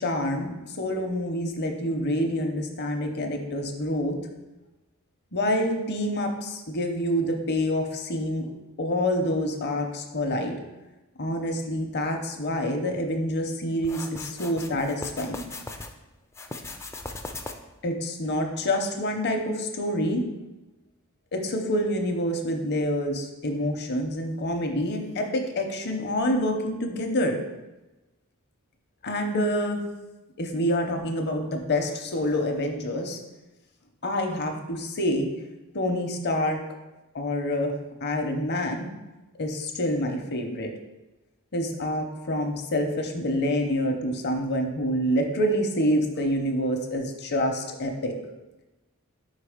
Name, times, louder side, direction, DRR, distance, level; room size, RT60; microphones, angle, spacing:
voice 1, 0.0-4.2 5.3-8.5 8.8-10.6 11.2-15.4 17.8-20.2 21.3-27.4 29.0-29.8 30.4-33.2 34.0-35.3 35.7-36.6 37.1-37.7 38.0-38.9 39.4-40.7 41.5-48.1, left 1 dB, 50° left, 4 dB, 0.8 m, -27 dB
sound 1, 13.8-15.9 16.3-17.8, left 2 dB, 15° left, 0.3 m, -38 dB
4.8 x 4.1 x 5.0 m, 1.1 s
head